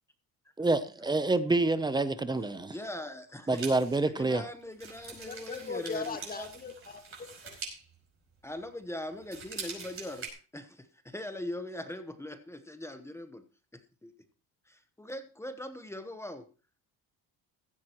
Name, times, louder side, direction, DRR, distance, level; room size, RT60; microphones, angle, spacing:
voice 1, 0.6-2.7 3.5-4.4, right 2 dB, 10° right, 0.6 m, -27 dB
voice 2, 2.7-3.6 4.1-6.5 8.4-10.3 10.5-13.4 13.7-14.1 14.7-16.5, left 1 dB, 5° left, 1.0 m, -41 dB
sound 1, 3.5-8.8 9.1-10.3, right 5 dB, 35° right, 5.1 m, -44 dB
voice 3, 5.2-7.6, left 5 dB, 25° left, 1.9 m, -39 dB
16.0 x 13.5 x 3.0 m
cardioid pair, 145°, 38 cm